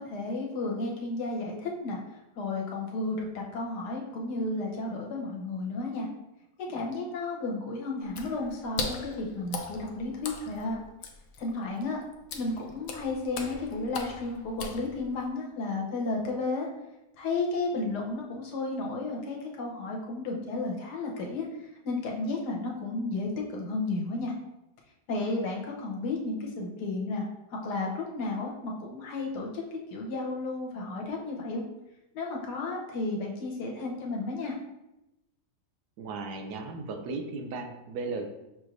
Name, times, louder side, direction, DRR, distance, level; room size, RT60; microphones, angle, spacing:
voice 1, 0.0-2.0 2.3-6.1 6.6-10.8 11.4-12.0 12.3-16.7 17.2-24.3 25.1-27.2 27.5-31.6 32.1-34.5, left 3 dB, 85° left, -1 dB, 1.4 m, -33 dB
Water / Splash splatter, 8.0-15.3, left 5 dB, 70° left, 0.8 m, -40 dB
voice 2, 36.0-38.3, right 3 dB, 80° right, 5 dB, 1.1 m, -36 dB
6.0 x 3.2 x 2.5 m, 0.93 s
omnidirectional pair, 1.7 m